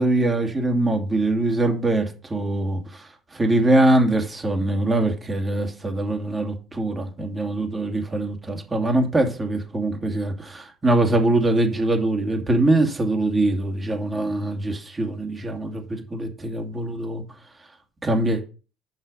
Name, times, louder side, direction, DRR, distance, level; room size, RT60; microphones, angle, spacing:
voice 1, 0.0-17.2 18.0-18.4, right 2 dB, 25° right, 2.4 m, -23 dB
7.6 x 5.6 x 5.4 m
hypercardioid pair, 70°, 0 cm